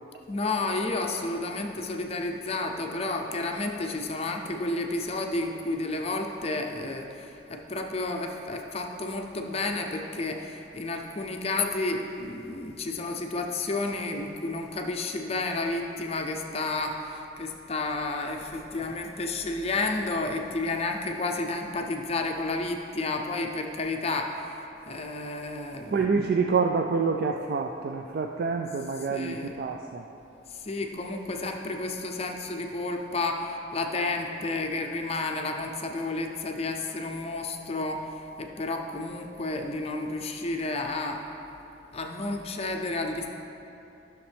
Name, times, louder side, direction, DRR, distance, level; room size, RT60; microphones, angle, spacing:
voice 1, 0.3-26.2 29.1-29.5 30.5-41.3 41.9-43.3, left 2 dB, 35° left, 3 dB, 0.6 m, -31 dB
voice 2, 25.9-30.1, right 5 dB, 55° right, 3 dB, 0.4 m, -27 dB
12.5 x 6.3 x 3.4 m, 2.9 s
head